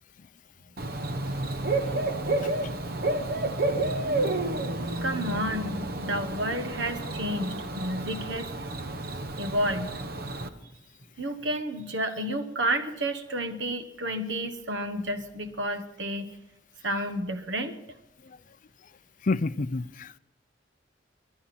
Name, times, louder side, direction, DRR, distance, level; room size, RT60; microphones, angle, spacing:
Bird / Cricket, 0.8-10.5, right 2 dB, 55° right, 1.0 m, -30 dB
voice 1, 5.0-8.5 9.4-10.0 11.2-16.3 16.8-17.8, right 1 dB, 85° right, 1.4 m, -31 dB
voice 2, 19.3-20.2, left 3 dB, 45° left, 0.5 m, -28 dB
24.0 x 11.0 x 4.4 m
head